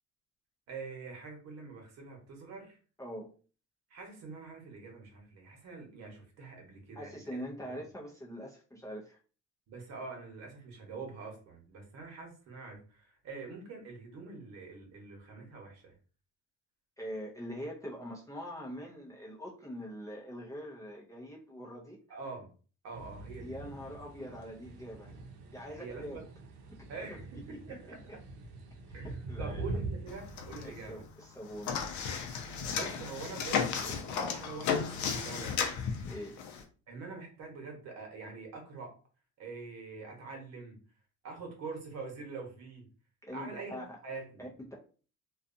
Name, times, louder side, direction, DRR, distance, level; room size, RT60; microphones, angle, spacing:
voice 1, 0.7-2.8 3.9-7.4 9.7-15.9 22.1-22.5 22.8-23.6 25.7-26.2 26.9-28.1 28.9-31.0 32.4-35.6 36.9-38.9 39.4-40.8 41.2-42.9 43.3-43.8 44.0-44.5, right 4 dB, 55° right, 1 dB, 1.0 m, -45 dB
voice 2, 3.0-3.3 7.0-9.2 17.0-22.0 23.4-25.1 25.5-26.2 26.7-26.9 27.3-27.6 29.0-29.6 30.6-31.8 36.1-36.3 43.2-44.0 44.4-44.7, equal, 10° left, -4 dB, 0.4 m, -43 dB
sound 1, 22.9-30.9, right 2 dB, 85° right, 0.7 m, -43 dB
sound 2, 30.1-36.6, left 6 dB, 70° left, 0.6 m, -34 dB
2.6 x 2.3 x 2.5 m, 0.38 s
cardioid pair, 145°, 30 cm